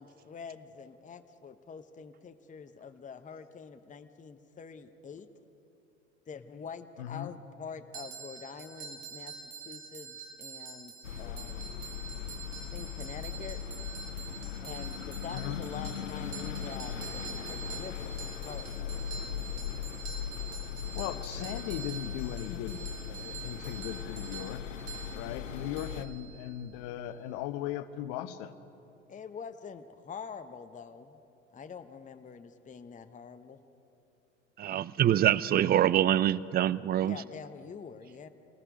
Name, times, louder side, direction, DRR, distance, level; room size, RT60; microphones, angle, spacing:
voice 1, 0.0-5.3 6.3-10.9 11.2-11.7 12.7-13.6 14.6-18.1 18.4-18.9 29.1-31.2 31.5-33.6 36.0-36.1 36.9-38.3, left 6 dB, 20° left, 8 dB, 1.0 m, -45 dB
voice 2, 7.0-7.3 15.3-15.6 20.9-24.6 25.1-28.5, left 12 dB, 60° left, 12 dB, 1.1 m, -38 dB
sound 1, 7.9-26.7, right 6 dB, 75° right, 2.4 m, -46 dB
sound 2, 11.0-26.0, left 8 dB, 90° left, 0.7 m, -39 dB
voice 3, 34.6-37.2, right 11 dB, 25° right, 20 dB, 0.5 m, -25 dB
28.5 x 19.5 x 5.1 m, 2.8 s
figure-of-eight pair, 70°, 37 cm